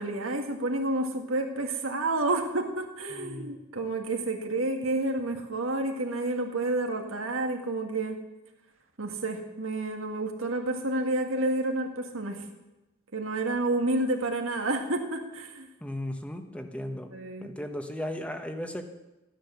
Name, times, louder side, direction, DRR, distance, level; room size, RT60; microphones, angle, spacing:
voice 1, 0.0-8.2 9.0-12.4 13.1-15.7 17.1-17.5, right 2 dB, 90° right, 3 dB, 2.0 m, -30 dB
voice 2, 3.1-3.6 15.8-17.1 17.4-18.8, left 1 dB, 5° left, 6 dB, 1.0 m, -36 dB
14.0 x 10.5 x 7.1 m, 1.0 s
head